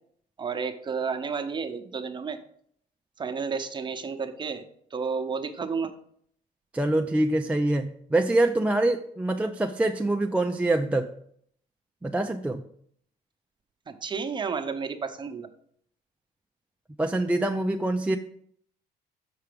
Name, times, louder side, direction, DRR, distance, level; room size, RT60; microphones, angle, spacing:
voice 1, 0.4-2.4 3.2-4.6 4.9-5.9 13.9-15.5, right 5 dB, 25° right, 7 dB, 0.8 m, -31 dB
voice 2, 6.7-11.1 12.0-12.6 17.0-18.2, right 2 dB, 10° right, 3 dB, 0.4 m, -25 dB
6.8 x 4.7 x 5.1 m, 0.64 s
cardioid pair, 110°, 17 cm